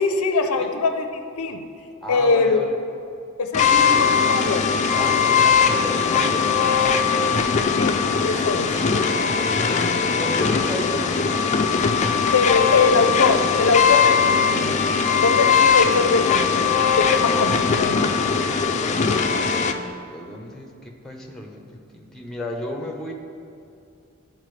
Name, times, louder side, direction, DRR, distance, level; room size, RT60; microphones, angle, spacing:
voice 1, 0.0-1.6 2.1-2.6 3.4-4.7 7.8-8.7 12.3-14.8 15.2-18.1, left 4 dB, 85° left, 6 dB, 0.6 m, -22 dB
voice 2, 2.0-2.7 3.8-4.0 4.9-7.1 9.3-11.5 20.1-23.1, left 1 dB, ahead, 0 dB, 0.8 m, -33 dB
sound 1, 3.5-19.7, left 6 dB, 35° left, 0.4 m, -20 dB
12.5 x 4.5 x 3.2 m, 2.5 s
head